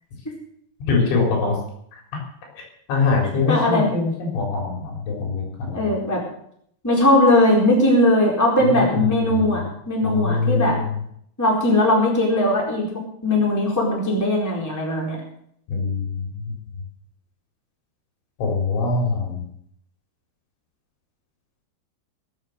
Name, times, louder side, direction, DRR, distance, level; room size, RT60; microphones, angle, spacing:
voice 1, 0.8-1.6 1.9-2.0 2.6-2.7 2.9-5.8 8.6-9.6 10.0-11.0 15.7-16.6 18.4-19.4, left 4 dB, 80° left, 0 dB, 6.4 m, -23 dB
voice 2, 3.5-3.9 5.7-6.2 6.8-10.8 11.4-12.9 13.2-15.2, left 1 dB, 5° left, -2 dB, 3.7 m, -19 dB
22.0 x 8.0 x 6.5 m, 0.69 s
omnidirectional pair, 5.4 m